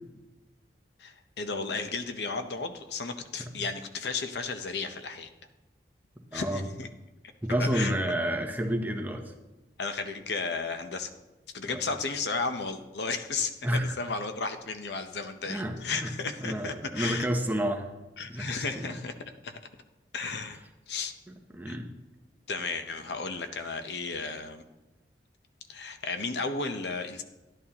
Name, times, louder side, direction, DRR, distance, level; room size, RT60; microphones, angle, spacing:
voice 1, 1.0-5.3 6.3-6.9 7.6-7.9 9.8-11.1 11.5-17.3 18.2-19.1 19.4-19.6 20.1-21.1 21.7-21.8 22.5-24.6 25.7-27.2, left 4 dB, 75° left, 8 dB, 0.8 m, -34 dB
voice 2, 6.3-6.6 7.4-9.3 11.7-11.8 13.6-13.9 15.5-16.1 16.4-17.9 18.3-18.9 21.3-21.9, equal, 10° right, 3 dB, 0.8 m, -30 dB
11.0 x 11.0 x 2.9 m, 1.1 s
head